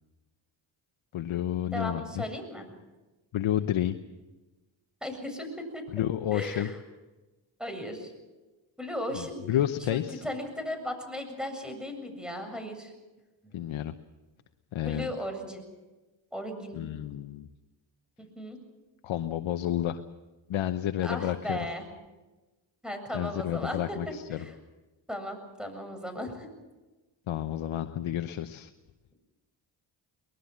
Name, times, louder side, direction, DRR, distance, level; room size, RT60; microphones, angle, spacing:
voice 1, 1.1-2.2 3.3-4.0 5.9-6.7 9.2-10.2 13.5-13.9 14.7-15.1 16.7-17.5 19.0-20.0 20.5-21.7 23.1-24.4 27.3-28.7, left 11 dB, 75° left, 8 dB, 1.0 m, -30 dB
voice 2, 1.7-2.6 5.0-5.8 6.3-6.8 7.6-8.1 8.8-9.4 9.8-12.9 13.4-13.7 14.8-15.6 16.3-16.8 18.2-18.6 21.0-21.8 22.8-24.5 25.1-26.5, equal, ahead, 6 dB, 7.5 m, -36 dB
23.0 x 20.5 x 7.5 m, 1.1 s
cardioid pair, 60°, 48 cm